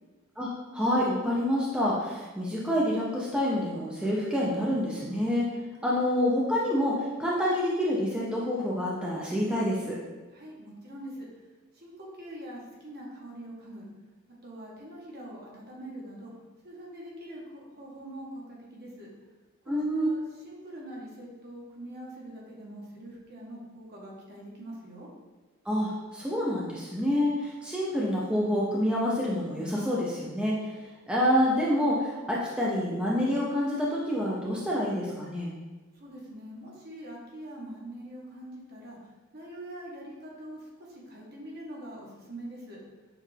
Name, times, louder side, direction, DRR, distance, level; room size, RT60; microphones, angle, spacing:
voice 1, 0.4-5.5 5.8-10.0 19.7-20.1 25.7-30.6 31.1-35.5, equal, 5° right, -5 dB, 0.5 m, -27 dB
voice 2, 10.3-11.3 11.7-13.9 14.4-16.3 16.6-19.1 19.6-25.1 35.9-42.8, right 1 dB, 50° right, -3 dB, 1.1 m, -44 dB
6.4 x 2.5 x 3.3 m, 1.2 s
head